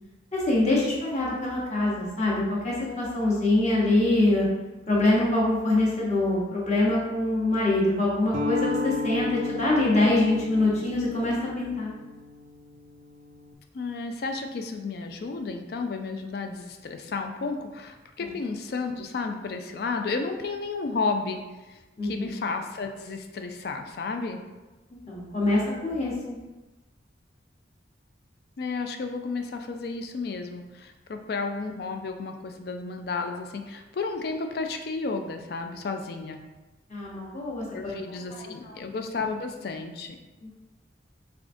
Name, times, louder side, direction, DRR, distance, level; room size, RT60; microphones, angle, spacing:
voice 1, 0.3-4.5 4.9-11.9 18.2-18.3 22.0-22.3 25.1-26.4 36.9-37.9 38.6-38.7 40.4-40.5, left 2 dB, 40° left, -5 dB, 0.9 m, -24 dB
sound 1, 8.3-13.5, left 3 dB, 40° right, 0.3 m, -34 dB
voice 2, 13.7-24.4 28.6-36.4 37.7-40.2, left 4 dB, 55° left, 5 dB, 0.3 m, -32 dB
3.5 x 3.5 x 2.5 m, 1.1 s
head